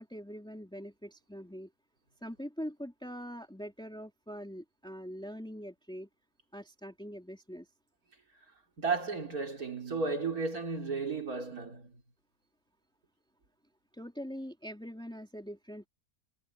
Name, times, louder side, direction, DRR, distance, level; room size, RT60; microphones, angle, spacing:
voice 1, 0.0-1.7 2.2-6.1 6.5-7.7 13.9-15.9, equal, 5° left, 3.5 m, -43 dB
voice 2, 8.8-11.9, right 4 dB, 65° right, 3.8 m, -33 dB
omnidirectional pair, 1.7 m